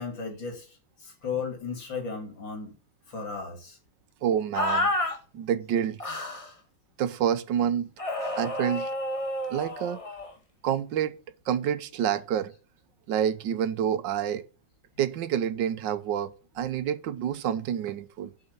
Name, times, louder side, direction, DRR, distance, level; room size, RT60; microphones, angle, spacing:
voice 1, 0.0-2.7 3.1-3.8 8.2-8.4, left 5 dB, 75° left, 3.4 m, -35 dB
voice 2, 4.2-4.9 5.3-6.0 7.0-7.9 8.4-8.9 9.5-10.0 10.6-11.2 11.5-12.5 13.1-14.4 15.0-18.3, right 9 dB, 75° right, 1.5 m, -28 dB
sound 1, 4.5-5.2 6.0-6.5 8.0-10.3, left 1 dB, 20° left, 1.5 m, -30 dB
8.0 x 5.6 x 6.6 m
omnidirectional pair, 2.1 m